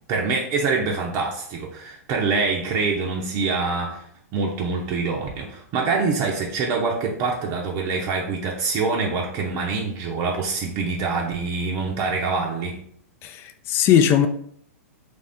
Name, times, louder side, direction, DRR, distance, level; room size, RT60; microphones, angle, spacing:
voice 1, 0.1-4.0 4.3-12.8, right 4 dB, 40° right, -1 dB, 0.6 m, -25 dB
voice 2, 13.2-14.3, left 9 dB, 30° left, 9 dB, 0.3 m, -19 dB
3.3 x 2.6 x 3.4 m, 0.65 s
hypercardioid pair, 120°, 8 cm